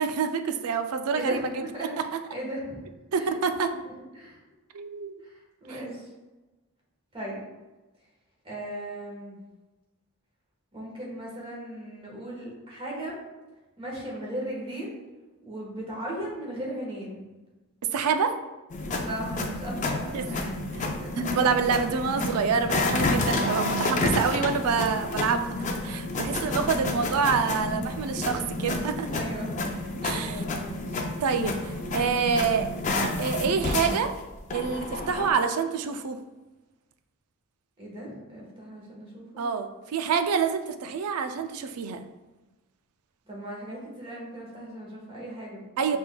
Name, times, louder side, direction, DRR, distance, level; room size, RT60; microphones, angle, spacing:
voice 1, 0.0-1.6 3.1-3.7 4.7-5.2 17.9-18.4 20.1-20.2 21.2-25.6 25.8-29.1 30.0-30.4 31.2-32.7 33.2-34.1 34.5-36.2 39.4-42.0 45.8-46.0, right 5 dB, 80° right, 8 dB, 0.4 m, -27 dB
voice 2, 1.1-2.8 3.1-3.3 3.8-4.4 5.2-6.1 7.1-7.5 8.4-9.4 10.7-13.2 13.8-15.0 15.4-17.3 19.0-20.6 20.8-21.3 29.0-31.0 37.8-39.5 43.3-46.0, right 1 dB, 25° right, -3 dB, 1.2 m, -37 dB
sound 1, 18.7-35.3, left 2 dB, 35° left, 0.4 m, -30 dB
6.0 x 3.4 x 2.2 m, 1.1 s
head